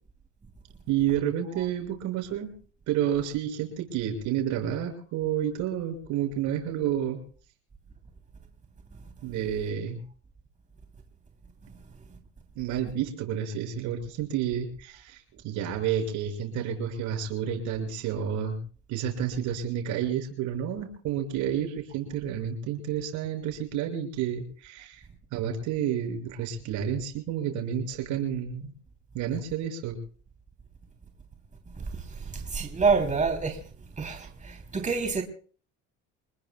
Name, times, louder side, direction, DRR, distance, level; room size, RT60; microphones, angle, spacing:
voice 1, 0.9-2.5 2.9-7.2 9.2-10.0 12.5-18.6 18.9-25.0 25.3-28.7 29.1-30.0, right 9 dB, 80° right, 6.4 m, -30 dB
voice 2, 32.3-33.6 34.0-35.2, right 5 dB, 25° right, 3.3 m, -27 dB
27.0 x 20.5 x 2.3 m
cardioid pair, 100°, 30 cm